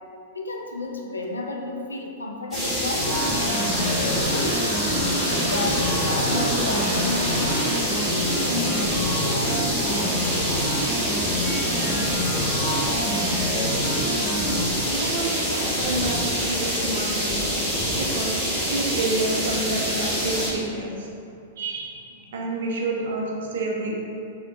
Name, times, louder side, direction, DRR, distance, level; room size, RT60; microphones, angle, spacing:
voice 1, 0.3-3.4 3.8-4.6 5.2-9.5, left 2 dB, 80° left, 1 dB, 0.3 m, -32 dB
sound 1, 2.5-20.5, equal, ahead, 1.4 m, -26 dB
sound 2, 2.9-15.5 15.8-16.5 16.8-18.7, equal, 15° left, 0.9 m, -28 dB
sound 3, 3.1-8.1 8.9-11.4, equal, 85° right, 1.4 m, -38 dB
voice 2, 13.5-13.9 14.4-17.5 17.9-21.1 21.6-24.0, right 2 dB, 65° right, -1 dB, 0.5 m, -29 dB
3.2 x 2.8 x 2.5 m, 2.6 s
figure-of-eight pair, 100°, 0 cm